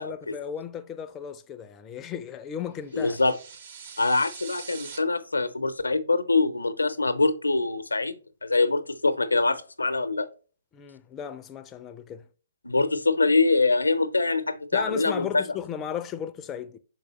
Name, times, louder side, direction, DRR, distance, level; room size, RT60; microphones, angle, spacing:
voice 1, 0.0-3.2 10.7-12.3 14.7-16.8, left 8 dB, 20° left, 0.5 m, -35 dB
voice 2, 2.9-3.3 4.0-10.3 12.6-15.4, left 3 dB, 85° left, 0.7 m, -24 dB
sound 1, 2.9-5.0, right 6 dB, 50° right, 1.1 m, -43 dB
6.5 x 4.8 x 3.0 m
figure-of-eight pair, 130°, 0 cm